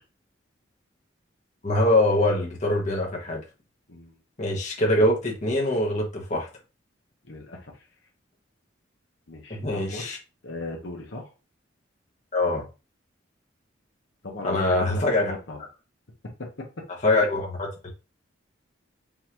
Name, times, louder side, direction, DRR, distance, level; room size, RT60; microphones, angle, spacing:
voice 1, 1.6-3.4 4.4-6.5 9.5-10.2 12.3-12.6 14.4-15.3 17.0-17.9, left 1 dB, 40° left, -1 dB, 1.2 m, -23 dB
voice 2, 7.2-7.7 9.3-10.0 10.4-11.3 14.2-15.6 16.4-16.7, left 2 dB, 70° left, 1 dB, 1.1 m, -38 dB
5.5 x 2.7 x 3.0 m, 0.31 s
head